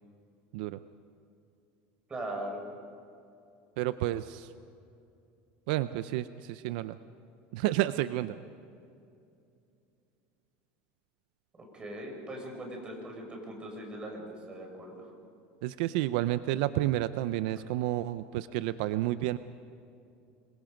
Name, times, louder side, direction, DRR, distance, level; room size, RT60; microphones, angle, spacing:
voice 1, 2.1-2.6 11.7-15.1, right 1 dB, 20° right, 1 dB, 5.7 m, -40 dB
voice 2, 3.8-4.5 5.7-7.0 7.5-8.4 15.6-19.4, right 15 dB, 75° right, 13 dB, 0.6 m, -30 dB
26.5 x 22.5 x 5.2 m, 2.6 s
supercardioid pair, 145°, 5 cm